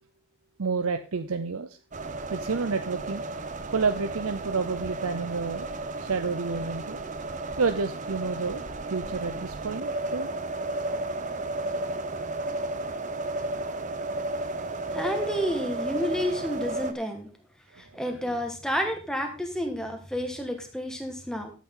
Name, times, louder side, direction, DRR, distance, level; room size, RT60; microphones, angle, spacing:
voice 1, 0.6-1.8 2.3-3.2 3.7-5.7 6.0-7.0 7.6-8.6 8.9-10.3 17.7-17.9, right 4 dB, 75° right, 9 dB, 0.7 m, -29 dB
sound 1, 1.9-16.9, right 2 dB, 35° right, 0.8 m, -33 dB
voice 2, 14.9-17.3 17.8-21.5, equal, 5° left, 4 dB, 1.6 m, -30 dB
13.0 x 8.3 x 3.8 m, 0.33 s
head